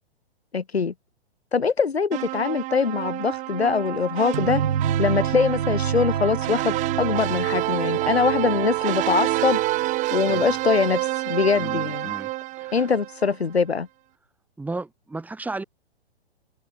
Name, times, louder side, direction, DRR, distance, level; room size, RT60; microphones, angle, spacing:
voice 1, 0.5-0.9 1.5-4.6 5.0-9.6 10.1-12.1 12.7-13.9, left 5 dB, 75° left, 2.6 m, -23 dB
sound 1, 2.1-13.3, right 18 dB, 25° right, 1.9 m, -28 dB
sound 2, 4.3-9.9, right 8 dB, 60° right, 7.4 m, -29 dB
voice 2, 11.5-12.3 12.6-12.9 14.6-15.6, right 3 dB, 5° right, 4.0 m, -34 dB
figure-of-eight pair, 120°, 32 cm